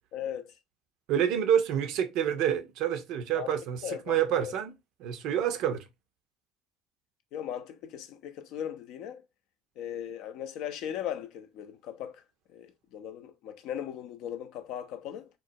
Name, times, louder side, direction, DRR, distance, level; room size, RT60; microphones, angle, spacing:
voice 1, 0.1-0.5 3.3-3.5 3.8-4.6 7.3-9.2 9.8-12.2 12.5-15.3, left 10 dB, 60° left, 0.4 m, -38 dB
voice 2, 1.1-4.7 5.0-5.8, right 9 dB, 60° right, 0.5 m, -28 dB
3.0 x 2.0 x 2.6 m
hypercardioid pair, 65°, 0 cm